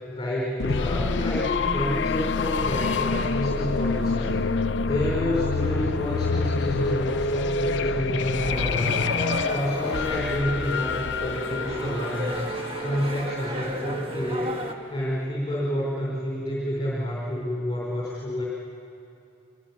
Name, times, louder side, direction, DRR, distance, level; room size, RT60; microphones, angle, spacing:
voice 1, 0.1-4.4 4.8-9.0 9.5-12.5 12.8-14.6 14.9-18.5, equal, 25° left, -5 dB, 3.7 m, -29 dB
sound 1, 0.6-13.3, left 4 dB, 70° left, 0.5 m, -27 dB
sound 2, 8.4-14.7, right 1 dB, 30° right, 1.4 m, -33 dB
24.0 x 21.0 x 7.2 m, 2.7 s
head